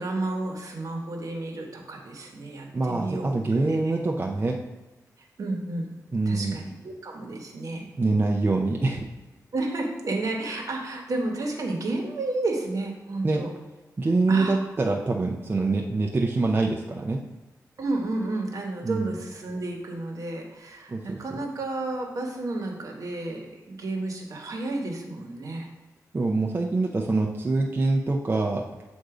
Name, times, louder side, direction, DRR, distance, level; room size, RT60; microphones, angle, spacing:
voice 1, 0.0-3.3 3.7-3.9 5.4-6.0 6.3-7.9 9.5-13.5 14.3-14.6 17.8-25.7, right 2 dB, 65° right, 1 dB, 1.1 m, -31 dB
voice 2, 2.7-4.6 6.1-6.6 8.0-9.0 13.2-13.4 14.0-17.2 18.8-19.1 20.9-21.2 26.1-28.7, right 3 dB, 35° right, 0 dB, 0.5 m, -25 dB
7.8 x 2.6 x 4.8 m, 1.1 s
wide cardioid pair, 90°, 6 cm